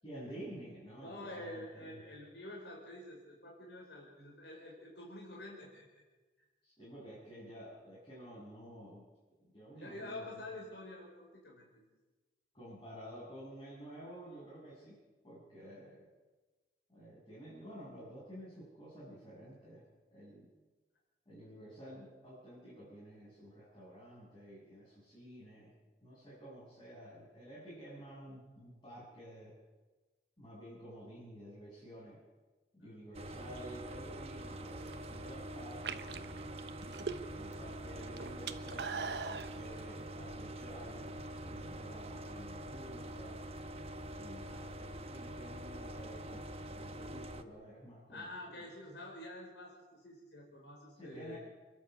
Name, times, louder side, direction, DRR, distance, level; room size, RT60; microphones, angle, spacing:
voice 1, 0.0-2.0 6.6-9.0 9.4-10.4 12.5-15.0 15.2-16.1 16.9-19.8 20.1-20.5 21.3-25.7 26.0-29.5 30.4-32.2 32.7-36.6 37.4-43.4 44.1-44.6 45.1-46.4 46.7-48.7 50.9-51.4, equal, 25° left, -7 dB, 7.6 m, -51 dB
voice 2, 1.0-5.9 9.7-11.8 15.6-15.7 32.8-33.3 44.4-45.0 48.1-51.4, left 1 dB, 75° left, -2 dB, 5.4 m, -48 dB
sound 1, 33.1-47.4, right 1 dB, 35° right, 1.1 m, -45 dB
sound 2, 34.7-35.1 35.7-37.5 37.8-39.5, right 5 dB, 75° right, 1.0 m, -40 dB
28.5 x 11.0 x 8.3 m, 1.2 s
head